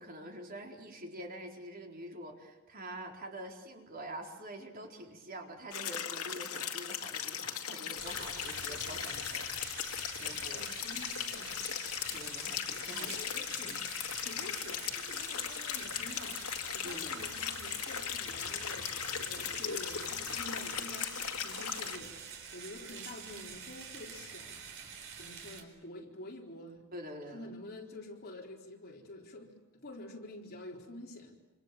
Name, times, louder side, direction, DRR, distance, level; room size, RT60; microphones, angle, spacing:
voice 1, 0.0-10.6 12.1-13.1 13.5-13.8 16.8-17.1 26.9-27.5, right 1 dB, 40° right, 4.1 m, -46 dB
sound 1, 5.7-22.0, left 8 dB, 75° left, 2.1 m, -38 dB
sound 2, 8.0-25.6, right 6 dB, 60° right, 4.4 m, -47 dB
voice 2, 10.4-11.7 12.9-13.9 14.2-16.5 16.7-24.7 25.2-26.9 27.3-31.4, left 1 dB, 45° left, 4.2 m, -48 dB
27.5 x 27.0 x 7.6 m
head